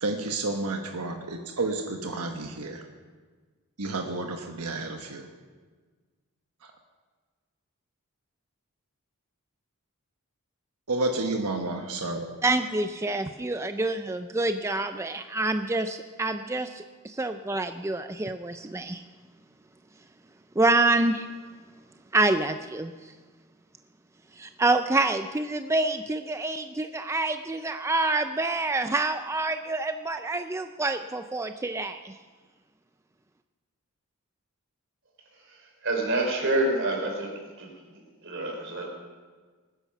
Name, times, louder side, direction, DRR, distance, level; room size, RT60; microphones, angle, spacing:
voice 1, 0.0-2.8 3.8-5.3 6.6-6.7 10.9-12.3, right 2 dB, 85° right, 4 dB, 1.3 m, -30 dB
voice 2, 12.4-19.0 20.6-21.3 22.1-23.1 24.4-32.1, right 2 dB, 15° right, 8 dB, 0.4 m, -27 dB
voice 3, 35.8-37.7 38.2-38.9, right 2 dB, 55° right, 1 dB, 3.7 m, -27 dB
20.5 x 9.9 x 5.9 m, 1.4 s
head